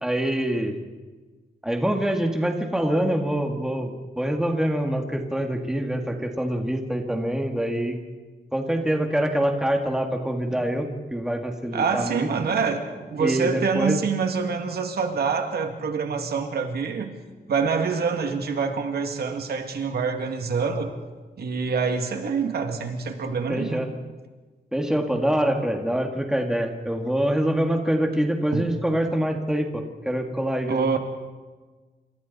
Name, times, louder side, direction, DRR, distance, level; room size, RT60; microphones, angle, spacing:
voice 1, 0.0-0.8 1.6-8.0 8.5-12.3 13.2-14.0 23.5-23.9 24.7-31.0, right 1 dB, 5° right, 3 dB, 1.8 m, -25 dB
voice 2, 11.7-17.1 17.5-20.9 21.4-23.8 28.5-28.7 30.7-31.0, right 5 dB, 70° right, 5 dB, 2.2 m, -26 dB
28.0 x 27.0 x 4.1 m, 1.3 s
wide cardioid pair, 180°, 17 cm